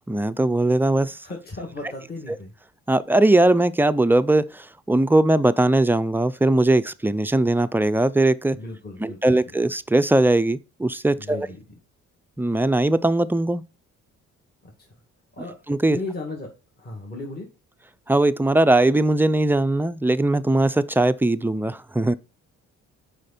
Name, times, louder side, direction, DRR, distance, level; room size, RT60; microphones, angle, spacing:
voice 1, 0.1-1.2 2.9-8.6 9.0-11.5 12.4-13.6 15.7-16.0 18.1-22.1, right 2 dB, 5° right, 0.3 m, -20 dB
voice 2, 1.2-2.5 8.5-9.5 11.2-11.6 14.6-14.7 15.4-15.6 15.9-16.5 16.8-17.5, left 2 dB, 30° left, 2.0 m, -35 dB
6.5 x 5.1 x 4.2 m
cardioid pair, 90°, 30 cm